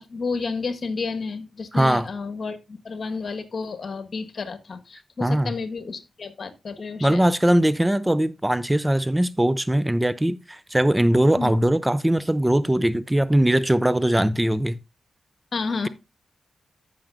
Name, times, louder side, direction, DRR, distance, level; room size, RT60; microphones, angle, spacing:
voice 1, 0.0-7.2 11.4-11.5 15.5-15.9, left 4 dB, 60° left, 1.5 m, -31 dB
voice 2, 1.7-2.1 5.2-5.5 7.0-14.8, right 1 dB, 15° right, 0.5 m, -20 dB
14.5 x 6.4 x 2.6 m
cardioid pair, 65°, 0 cm